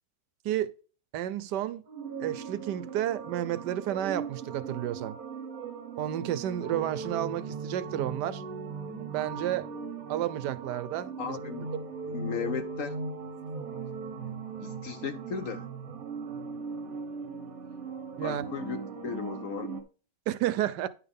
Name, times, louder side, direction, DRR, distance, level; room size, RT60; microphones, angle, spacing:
voice 1, 1.1-1.8 2.2-5.2 6.0-8.4 9.1-9.7 10.1-11.4 18.2-18.5 20.3-20.9, right 12 dB, 75° right, 1.2 m, -31 dB
sound 1, 1.9-19.8, right 5 dB, 55° right, 1.5 m, -39 dB
voice 2, 11.2-11.7 12.0-13.0 14.6-15.7 18.2-19.8, left 7 dB, 60° left, 1.0 m, -36 dB
10.0 x 6.0 x 3.5 m
omnidirectional pair, 1.9 m